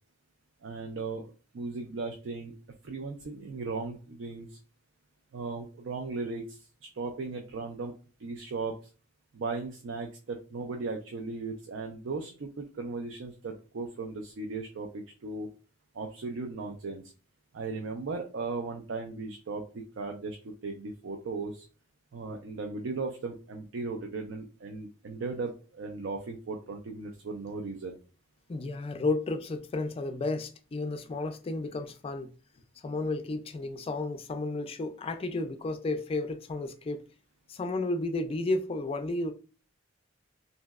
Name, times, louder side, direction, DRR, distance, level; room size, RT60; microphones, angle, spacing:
voice 1, 0.6-2.5 2.8-4.6 5.3-7.9 8.2-8.8 9.3-15.5 15.9-17.1 17.5-21.6 22.1-28.0, right 3 dB, 70° right, 0.4 m, -37 dB
voice 2, 28.5-32.3 32.8-37.0 37.5-39.3, left 2 dB, 30° left, 0.3 m, -32 dB
3.0 x 2.6 x 2.3 m
head